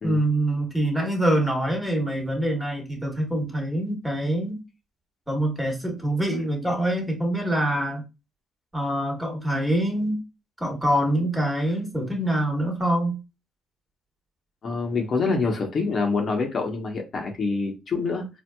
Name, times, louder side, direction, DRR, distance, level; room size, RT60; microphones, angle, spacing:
voice 1, 0.0-4.6 5.3-8.0 8.7-10.2 10.6-13.2, right 1 dB, 5° right, 1.3 m, -25 dB
voice 2, 14.6-18.3, left 4 dB, 50° left, 0.9 m, -26 dB
4.4 x 2.1 x 2.2 m
cardioid pair, 90°, 0 cm